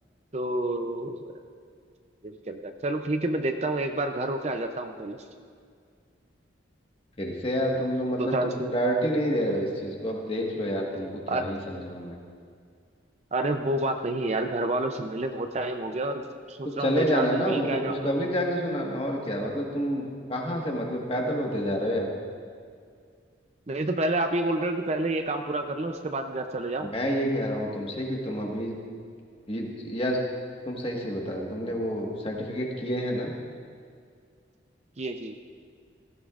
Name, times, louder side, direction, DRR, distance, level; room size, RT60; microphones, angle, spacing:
voice 1, 0.3-1.4 2.2-5.2 8.2-8.7 11.3-11.5 13.3-18.1 23.7-26.9 35.0-35.4, right 2 dB, 35° right, 6 dB, 0.5 m, -29 dB
voice 2, 7.2-12.2 16.6-22.1 26.8-28.8 29.5-30.2 30.6-33.3, equal, 30° left, -1 dB, 1.5 m, -28 dB
18.0 x 15.0 x 2.5 m, 2.2 s
head